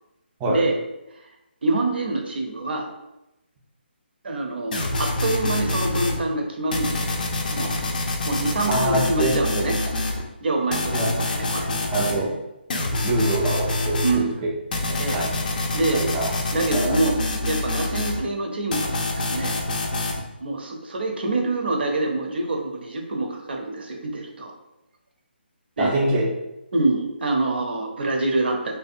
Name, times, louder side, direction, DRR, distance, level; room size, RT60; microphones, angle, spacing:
voice 1, 1.6-2.9 4.2-7.7 8.2-9.8 10.4-11.8 14.0-14.3 15.0-15.3 15.7-16.0 16.5-17.2 17.5-19.6 20.4-24.5 25.8-26.1 26.7-28.8, right 2 dB, 65° right, 2 dB, 0.6 m, -26 dB
sound 1, 4.7-6.2 6.7-10.2 10.7-12.2 12.7-14.2 14.7-18.2 18.7-20.2, left 2 dB, 50° left, 0.4 m, -26 dB
voice 2, 8.7-9.7 10.9-11.1 11.9-12.3 13.0-14.5 14.9-15.3 15.9-16.3 16.6-17.0 25.8-26.3, right 2 dB, 15° right, -2 dB, 0.4 m, -25 dB
2.6 x 2.1 x 2.4 m, 0.92 s
figure-of-eight pair, 155°, 6 cm